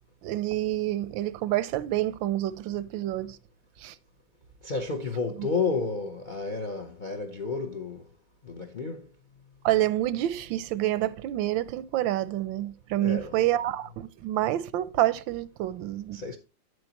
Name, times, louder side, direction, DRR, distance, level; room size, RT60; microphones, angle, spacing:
voice 1, 0.2-3.4 3.8-3.9 5.4-5.5 9.6-16.2, right 14 dB, 85° right, 1.3 m, -28 dB
voice 2, 4.6-8.1 8.4-9.1 13.0-13.3 16.1-16.4, left 4 dB, 55° left, 0.5 m, -31 dB
9.2 x 7.9 x 2.9 m
omnidirectional pair, 2.1 m